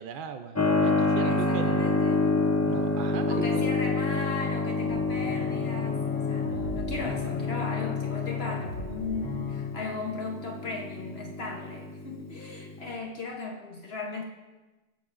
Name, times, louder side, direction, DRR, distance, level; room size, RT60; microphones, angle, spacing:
voice 1, 0.0-2.0 2.6-3.6, right 7 dB, 55° right, 7 dB, 0.6 m, -37 dB
Keyboard (musical), 0.5-13.0, left 3 dB, 20° left, 0.4 m, -29 dB
voice 2, 1.2-2.3 3.3-14.2, left 3 dB, 60° left, 1 dB, 1.1 m, -37 dB
sound 1, 4.9-9.8, left 6 dB, 85° left, 1.7 m, -34 dB
19.5 x 9.3 x 2.5 m, 1.2 s
omnidirectional pair, 1.3 m